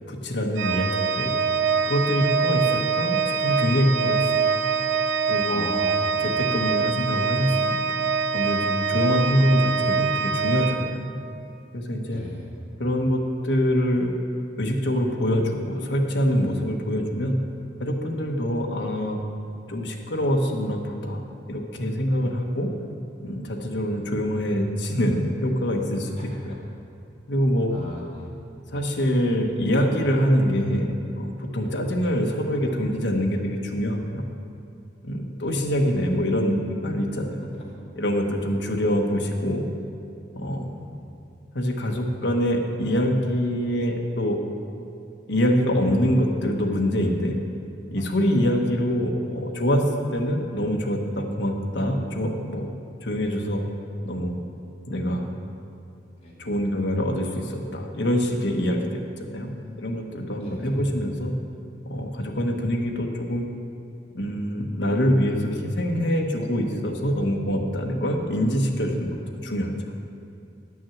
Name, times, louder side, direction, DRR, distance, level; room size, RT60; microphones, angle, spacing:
voice 1, 0.1-1.3 1.8-4.3 5.3-5.7 6.2-11.1 11.7-12.2 12.8-14.2 14.6-17.3 17.8-19.2 19.7-21.2 21.5-22.8 23.2-26.6 27.3-27.7 28.7-34.3 35.0-37.5 38.0-39.6 40.3-40.7 41.5-44.4 45.3-47.4 47.9-49.8 50.1-52.7 53.0-53.6 54.0-54.4 54.9-55.3 56.4-59.5 59.8-61.3 61.8-63.4 64.1-69.1 69.4-69.7, equal, 75° left, 1 dB, 1.1 m, -25 dB
Organ, 0.6-11.4, right 5 dB, 75° right, 0.5 m, -24 dB
voice 2, 5.5-6.3 12.1-12.4 22.2-22.5 26.2-26.6 27.7-28.3 35.4-35.5 37.5-37.6 40.6-41.2 56.2-56.4 59.2-60.0 60.4-60.8, left 1 dB, 35° left, -6 dB, 2.6 m, -39 dB
10.5 x 6.2 x 7.1 m, 2.6 s
head